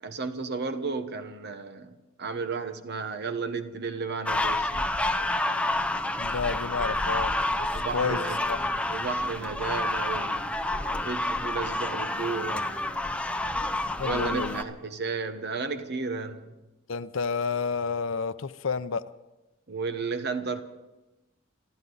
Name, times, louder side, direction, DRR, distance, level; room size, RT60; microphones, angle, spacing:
voice 1, 0.0-1.9 2.2-4.7 7.7-8.4 8.9-10.4 10.9-12.7 14.0-16.6 19.7-20.6, right 4 dB, 55° right, 1.1 m, -33 dB
sound 1, 4.3-14.6, left 2 dB, 5° left, 0.6 m, -29 dB
voice 2, 6.2-7.3 7.6-8.2 8.5-8.6 14.0-14.6 16.9-19.0, left 5 dB, 70° left, 0.6 m, -30 dB
26.5 x 13.5 x 4.0 m
head